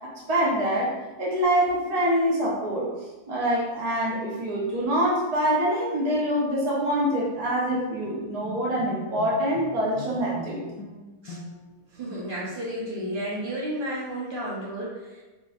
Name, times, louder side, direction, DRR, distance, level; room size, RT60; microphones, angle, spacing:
voice 1, 0.0-0.9 1.2-2.9 3.3-10.6, equal, 75° right, -6 dB, 0.3 m, -25 dB
Bowed string instrument, 7.0-11.8, left 4 dB, 75° left, 1.1 m, -40 dB
voice 2, 11.9-15.2, right 1 dB, 40° right, -6 dB, 1.0 m, -32 dB
3.8 x 3.0 x 2.4 m, 1.2 s
omnidirectional pair, 1.7 m